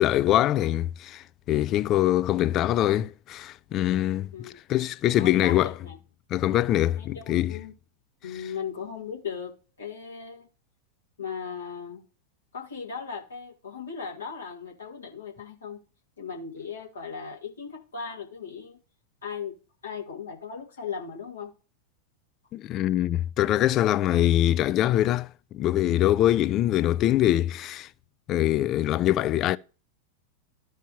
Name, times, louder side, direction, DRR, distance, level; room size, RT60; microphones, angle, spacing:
voice 1, 0.0-5.7 6.3-7.5 22.5-25.3 25.5-27.9 28.3-29.6, left 13 dB, 35° left, 0.3 m, -23 dB
voice 2, 5.2-6.0 7.0-7.7 8.2-10.5 11.2-12.0 12.5-15.8 16.2-18.8 19.2-19.6 19.8-21.5, left 6 dB, 70° left, 1.9 m, -37 dB
14.0 x 4.7 x 2.9 m
figure-of-eight pair, 90°, 0 cm